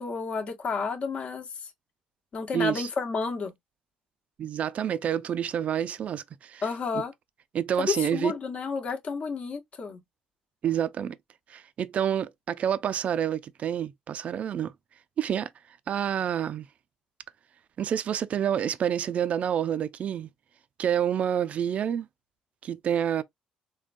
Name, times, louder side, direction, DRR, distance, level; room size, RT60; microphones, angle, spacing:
voice 1, 0.0-1.7 2.3-3.5 6.6-7.1 7.8-10.0, left 4 dB, 50° left, 0.9 m, -31 dB
voice 2, 2.5-2.9 4.4-6.7 7.5-8.3 10.6-11.2 11.5-14.7 15.2-15.5 15.9-16.7 17.8-20.3 20.8-22.1 22.6-23.2, right 9 dB, 55° right, 0.3 m, -28 dB
3.6 x 2.2 x 2.5 m
supercardioid pair, 75°, 3 cm